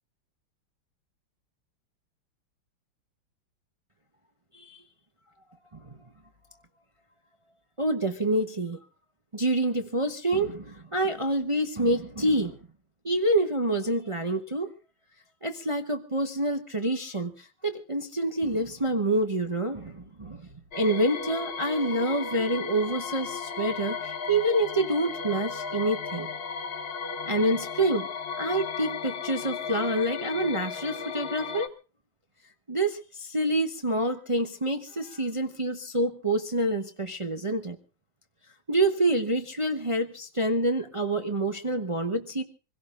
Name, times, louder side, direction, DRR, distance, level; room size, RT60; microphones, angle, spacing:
voice 1, 7.8-8.8 9.3-12.6 13.0-14.7 15.4-20.5 20.8-26.3 27.3-28.1 28.4-31.7 32.7-37.8 38.7-42.4, right 1 dB, 55° right, 5 dB, 0.3 m, -27 dB
sound 1, 20.7-31.7, left 6 dB, 80° left, 0.5 m, -35 dB
26.5 x 17.0 x 2.5 m, 0.35 s
omnidirectional pair, 2.3 m